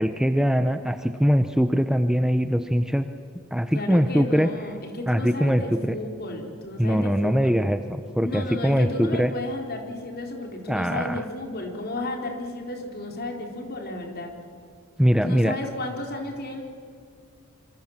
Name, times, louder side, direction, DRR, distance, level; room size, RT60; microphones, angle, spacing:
voice 1, 0.0-3.1 3.5-4.5 5.1-5.9 6.8-9.3 10.7-11.2 15.0-15.6, equal, 5° right, 8 dB, 0.7 m, -22 dB
voice 2, 3.7-7.6 8.2-14.3 15.2-16.6, left 2 dB, 45° left, 2 dB, 4.1 m, -33 dB
26.0 x 25.5 x 7.4 m, 2.3 s
head